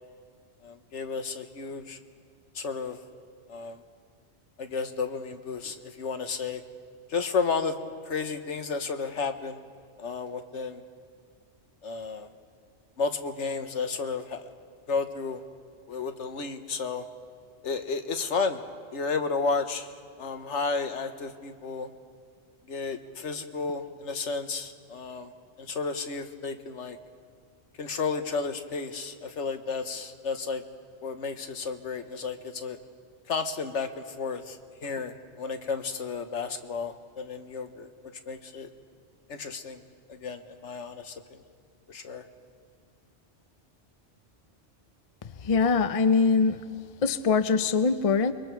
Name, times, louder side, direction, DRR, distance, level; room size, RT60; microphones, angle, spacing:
voice 1, 0.6-2.0 2.5-3.0 3.5-3.8 4.6-6.6 7.1-7.8 8.0-9.6 10.0-10.8 11.8-12.3 13.0-14.5 14.9-15.4 15.9-17.1 17.6-18.6 18.9-21.9 22.7-25.3 25.6-27.0 27.8-30.6 31.0-32.8 33.3-37.9 38.3-38.7 39.3-39.8 40.1-41.4 41.9-42.2, left 4 dB, 85° left, 7 dB, 1.4 m, -32 dB
voice 2, 45.2-46.6 47.0-48.3, left 5 dB, 35° left, 10 dB, 0.7 m, -23 dB
29.0 x 23.0 x 4.6 m, 2.1 s
omnidirectional pair, 1.2 m